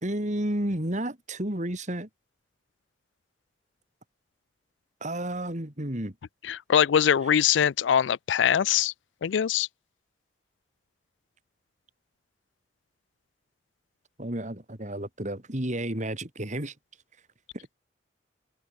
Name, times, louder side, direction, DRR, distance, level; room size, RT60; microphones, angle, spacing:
voice 1, 0.0-2.1 5.0-6.1 14.2-16.7, right 1 dB, 40° right, 3.7 m, -31 dB
voice 2, 6.4-8.9 9.2-9.7, left 8 dB, 85° left, 0.4 m, -22 dB
open air
head